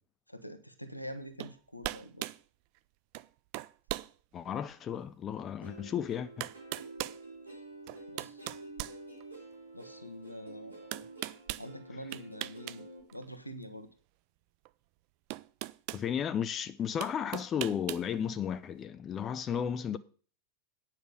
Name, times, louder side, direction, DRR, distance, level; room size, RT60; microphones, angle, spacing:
voice 1, 0.3-2.3 8.1-8.5 9.7-10.9 11.6-12.9 13.1-13.9, equal, 90° left, 1.2 m, -45 dB
sound 1, 1.4-1.6 1.8-2.4 3.1-3.3 3.5-4.1 4.7-4.8 5.9-6.0 6.4-7.2 7.9-9.5 10.9-11.7 12.1-12.8 13.1-13.2 14.7-14.8 15.3-16.1 17.0-18.1, right 19 dB, 45° right, 0.4 m, -39 dB
voice 2, 4.3-6.5 15.9-20.0, left 8 dB, 25° left, 0.6 m, -34 dB
Plucked string instrument, 5.6-13.0, right 2 dB, 80° right, 4.1 m, -49 dB
9.5 x 5.9 x 7.7 m
figure-of-eight pair, 90°, 0 cm